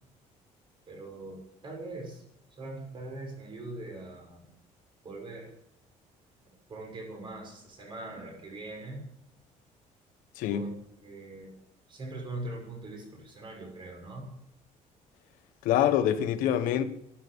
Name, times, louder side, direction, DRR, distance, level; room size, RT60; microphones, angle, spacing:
voice 1, 0.9-2.2 2.6-4.4 5.0-5.5 6.7-9.0 10.5-10.7 11.0-11.5 11.9-14.3, right 2 dB, 35° right, 6.4 m, -41 dB
voice 2, 10.4-10.7 15.6-16.8, left 10 dB, 90° left, 1.4 m, -25 dB
13.0 x 11.0 x 8.3 m
cardioid pair, 155°, 14 cm